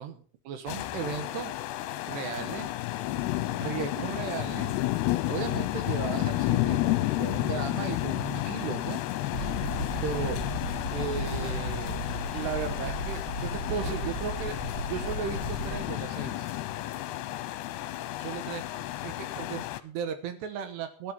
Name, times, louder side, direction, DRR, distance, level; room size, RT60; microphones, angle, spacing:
voice 1, 0.0-1.5 2.1-2.7 3.6-4.8 5.1-9.5 10.0-10.4 10.9-12.0 12.3-14.6 14.9-16.5 18.2-18.6 19.0-21.1, right 7 dB, 70° right, 10 dB, 3.0 m, -36 dB
sound 1, 0.7-19.8, left 16 dB, 75° left, 2.6 m, -31 dB
sound 2, 9.3-15.8, right 1 dB, 55° right, 7.5 m, -35 dB
14.5 x 10.5 x 5.5 m, 0.41 s
omnidirectional pair, 5.4 m